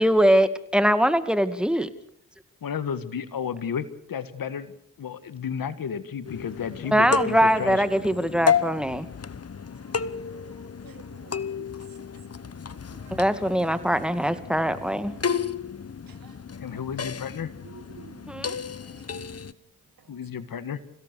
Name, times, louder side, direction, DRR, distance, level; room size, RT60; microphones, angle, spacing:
voice 1, 0.0-1.9 6.9-9.1 13.1-15.1 18.3-18.5, equal, 5° right, 2.3 m, -22 dB
voice 2, 2.6-7.8 16.6-17.5 20.1-20.8, left 7 dB, 75° left, 1.7 m, -32 dB
sound 1, 6.2-19.5, left 7 dB, 45° left, 1.1 m, -32 dB
voice 3, 9.6-13.3 16.1-16.8 17.6-19.4 20.0-20.2, right 8 dB, 80° right, 2.1 m, -53 dB
27.5 x 17.0 x 6.8 m
cardioid pair, 45°, 34 cm